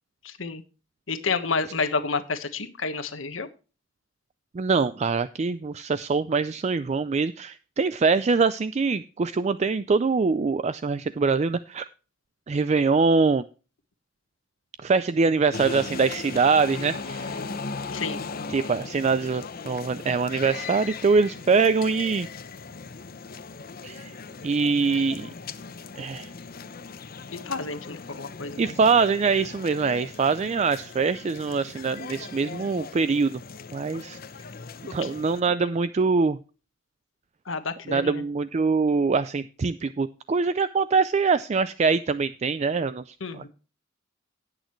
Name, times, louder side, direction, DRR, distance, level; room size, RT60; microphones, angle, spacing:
voice 1, 0.2-0.6 1.1-3.5 17.9-18.2 27.3-28.8 35.0-35.1 37.5-38.2 43.2-43.5, left 4 dB, 80° left, 9 dB, 1.3 m, -30 dB
voice 2, 4.5-11.8 12.5-13.4 14.8-17.4 18.5-22.3 23.8-24.1 24.4-25.3 26.0-26.3 28.6-33.4 33.7-34.2 34.9-36.4 37.9-43.0 43.3-43.5, right 4 dB, 35° right, 14 dB, 0.4 m, -23 dB
sound 1, 15.5-35.4, left 4 dB, 50° left, 0.8 m, -38 dB
18.0 x 6.5 x 3.1 m, 0.33 s
head